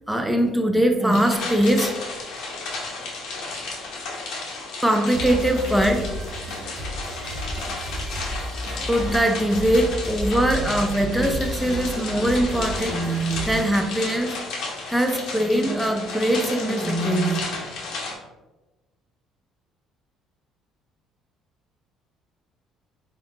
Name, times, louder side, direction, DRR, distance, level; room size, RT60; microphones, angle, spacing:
voice 1, 0.0-1.9 4.8-6.0 8.9-14.4 14.9-17.5, right 1 dB, 5° right, 4 dB, 0.6 m, -22 dB
sound 1, 1.1-18.2, left 3 dB, 70° left, 0.9 m, -33 dB
sound 2, 5.1-13.8, equal, 55° right, 1.0 m, -32 dB
3.7 x 2.5 x 3.6 m, 1.1 s
supercardioid pair, 70°, 0 cm